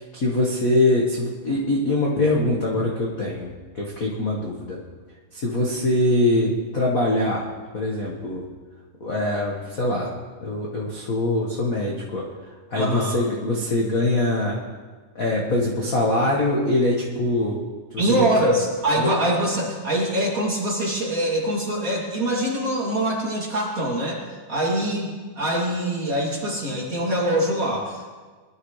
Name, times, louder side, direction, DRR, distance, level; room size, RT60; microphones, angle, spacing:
voice 1, 0.0-3.5 3.7-4.8 5.3-7.4 7.7-8.4 9.0-10.1 10.4-12.3 12.7-14.6 15.1-17.6 17.9-18.3 19.0-19.1, left 1 dB, 40° left, -3 dB, 1.3 m, -23 dB
voice 2, 12.7-13.2 18.0-24.2 24.5-28.1, right 1 dB, 30° right, -4 dB, 3.0 m, -24 dB
22.0 x 12.5 x 3.3 m, 1.4 s
omnidirectional pair, 3.4 m